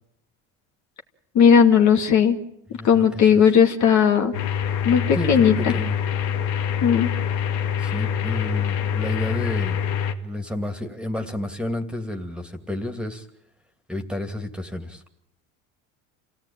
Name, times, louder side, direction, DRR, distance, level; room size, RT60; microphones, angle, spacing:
voice 1, 1.3-2.4 2.8-4.3 4.8-5.7 6.8-7.1, left 7 dB, 50° left, 4 dB, 2.6 m, -16 dB
voice 2, 2.7-3.5 5.1-6.0 7.8-9.8 10.2-13.3 13.9-15.0, left 1 dB, 5° right, 7 dB, 2.8 m, -31 dB
sound 1, 4.3-10.1, left 8 dB, 75° left, 2.4 m, -25 dB
27.5 x 17.0 x 9.0 m, 0.74 s
supercardioid pair, 100°, 37 cm